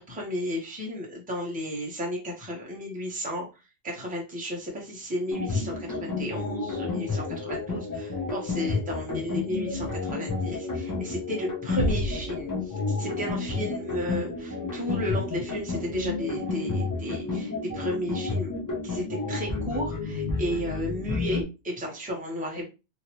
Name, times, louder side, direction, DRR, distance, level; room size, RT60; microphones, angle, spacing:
voice 1, 0.0-3.5 3.8-18.5 18.8-22.7, equal, 10° right, -2 dB, 0.9 m, -33 dB
sound 1, 5.3-21.4, left 3 dB, 20° left, 0.6 m, -31 dB
Bass drum, 11.8-13.2, right 2 dB, 90° right, 1.0 m, -31 dB
3.0 x 2.6 x 2.9 m, 0.28 s
omnidirectional pair, 1.2 m